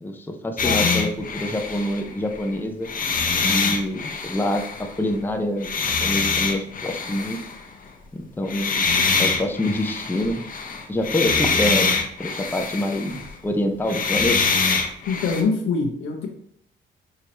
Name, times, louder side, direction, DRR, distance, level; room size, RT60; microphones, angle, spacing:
voice 1, 0.0-2.9 3.4-7.4 8.1-8.9 9.2-10.4 10.9-14.4, left 1 dB, 10° left, 4 dB, 0.6 m, -26 dB
voice 2, 0.6-1.1 15.1-16.3, left 5 dB, 85° left, 2 dB, 1.0 m, -24 dB
sound 1, 0.6-2.4 2.8-5.0 5.6-7.6 8.5-13.4 13.8-15.4, left 4 dB, 45° left, 0.8 m, -24 dB
6.3 x 2.9 x 2.9 m, 0.71 s
cardioid pair, 90°, 20 cm